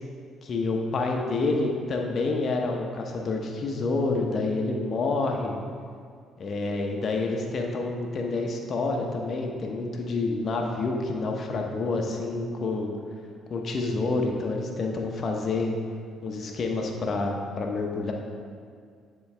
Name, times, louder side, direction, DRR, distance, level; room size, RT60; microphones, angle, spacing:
voice 1, 0.4-5.6 6.4-12.9 13.5-15.7 16.2-18.1, left 3 dB, 50° left, 1 dB, 0.8 m, -28 dB
9.7 x 3.9 x 3.3 m, 2.1 s
supercardioid pair, 70°, 0 cm